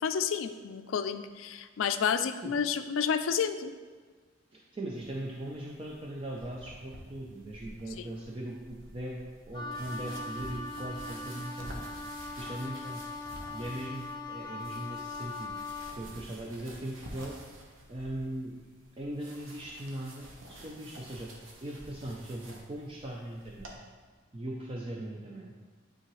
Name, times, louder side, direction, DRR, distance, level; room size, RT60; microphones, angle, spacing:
voice 1, 0.0-3.7 8.0-8.1, left 7 dB, 75° left, 10 dB, 0.4 m, -30 dB
voice 2, 4.5-9.2 9.5-11.8 12.4-13.0 13.5-15.5 15.9-17.4 17.9-18.5 19.0-21.3 21.6-23.7 24.3-25.5, right 1 dB, 30° right, -2 dB, 0.5 m, -39 dB
sound 1, 4.9-23.8, right 1 dB, 75° right, 1.0 m, -50 dB
Wind instrument woodwind instrument, 9.5-16.0, left 3 dB, 25° left, 0.7 m, -40 dB
9.2 x 3.7 x 3.1 m, 1.4 s
head